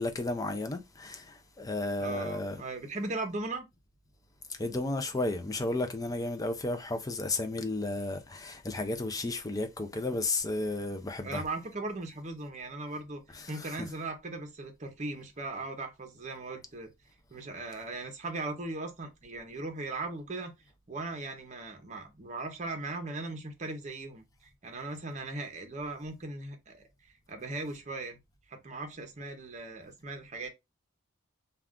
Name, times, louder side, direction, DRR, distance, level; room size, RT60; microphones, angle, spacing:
voice 1, 0.0-2.6 4.6-11.4 13.3-13.7, left 2 dB, 15° left, 0.4 m, -33 dB
voice 2, 2.0-3.7 11.2-13.2 13.5-16.9 17.3-20.5 20.9-26.9 27.3-28.2 28.5-30.5, right 2 dB, 35° right, 0.7 m, -38 dB
2.4 x 2.3 x 3.5 m
head